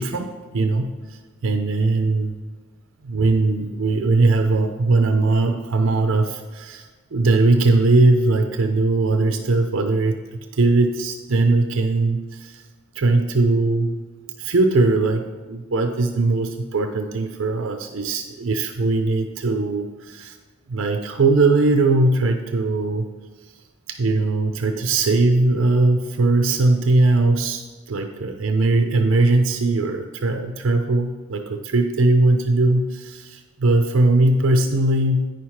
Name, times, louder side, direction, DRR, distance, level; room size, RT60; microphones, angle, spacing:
voice 1, 0.0-2.3 3.0-12.6 13.0-14.0 14.4-20.4 20.7-23.1 23.9-35.2, right 2 dB, 75° right, 6 dB, 0.5 m, -20 dB
9.2 x 5.7 x 4.7 m, 1.3 s
head